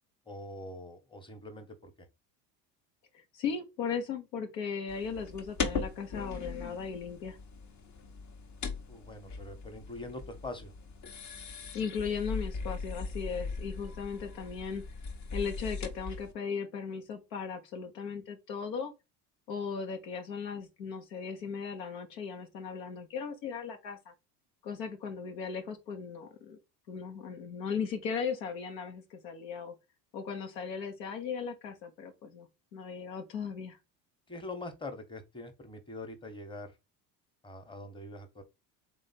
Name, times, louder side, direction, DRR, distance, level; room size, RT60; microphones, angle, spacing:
voice 1, 0.3-1.9 8.9-10.7 34.3-36.7 37.4-38.4, left 2 dB, 10° left, 1.1 m, -43 dB
voice 2, 3.1-7.4 11.7-14.8 15.3-18.9 19.5-24.1 24.6-26.6 26.9-29.7 30.1-33.8, left 6 dB, 80° left, 1.1 m, -37 dB
sound 1, 4.9-16.3, left 5 dB, 35° left, 1.0 m, -39 dB
3.6 x 3.1 x 4.2 m
hypercardioid pair, 80°, 49 cm